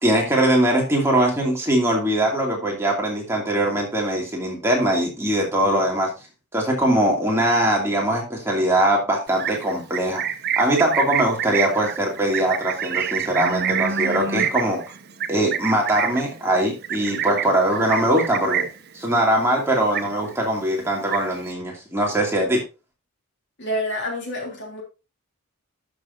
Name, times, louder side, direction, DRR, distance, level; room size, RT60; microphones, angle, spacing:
voice 1, 0.0-6.1 6.5-10.2 10.6-14.8 15.3-18.7 18.9-22.6, right 1 dB, 10° right, 2.5 m, -21 dB
Livestock farm animals working animals, 9.3-18.9 19.2-19.5 19.8-20.5 20.8-21.5, right 8 dB, 45° right, 0.6 m, -27 dB
voice 2, 23.6-24.8, equal, 55° left, 3.1 m, -28 dB
12.5 x 6.4 x 2.7 m
head